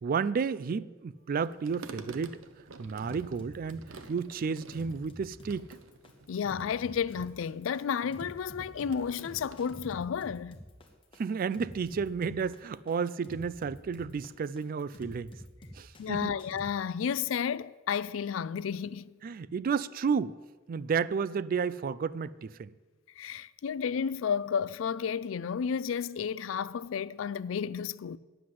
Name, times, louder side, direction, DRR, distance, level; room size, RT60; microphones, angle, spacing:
voice 1, 0.0-2.4 2.8-5.7 11.2-15.3 15.7-16.3 19.2-20.3 20.7-22.7, right 5 dB, 45° right, 0.3 m, -32 dB
sound 1, 1.4-9.8, right 3 dB, 75° right, 0.8 m, -49 dB
sound 2, 3.0-16.7, equal, 25° left, 1.4 m, -48 dB
voice 2, 6.3-10.6 16.0-19.1 23.2-28.2, left 7 dB, 75° left, 0.4 m, -32 dB
10.0 x 7.8 x 7.6 m
head